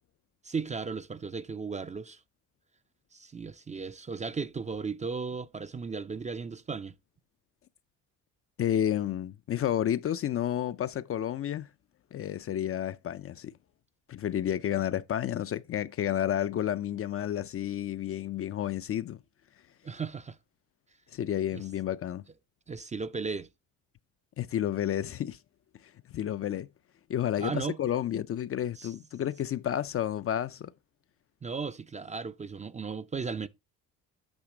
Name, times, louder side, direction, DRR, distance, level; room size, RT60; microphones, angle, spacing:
voice 1, 0.4-2.2 3.1-7.0 19.8-20.4 21.5-21.6 22.7-23.5 27.4-27.8 28.8-28.9 31.4-33.5, right 5 dB, 20° right, 0.5 m, -36 dB
voice 2, 8.6-11.7 12.1-13.5 14.1-19.2 21.1-22.2 24.4-25.4 26.1-26.7 27.1-30.7, left 11 dB, 40° left, 0.5 m, -31 dB
8.9 x 3.1 x 4.9 m
supercardioid pair, 70°, 37 cm